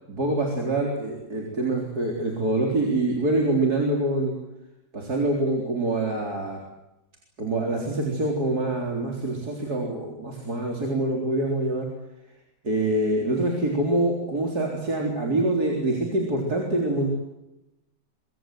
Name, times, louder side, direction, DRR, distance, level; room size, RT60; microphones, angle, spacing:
voice 1, 0.1-4.3 4.9-6.6 7.4-11.9 12.6-17.1, right 2 dB, 60° right, 0 dB, 4.4 m, -25 dB
25.0 x 24.0 x 7.7 m, 0.95 s
omnidirectional pair, 1.9 m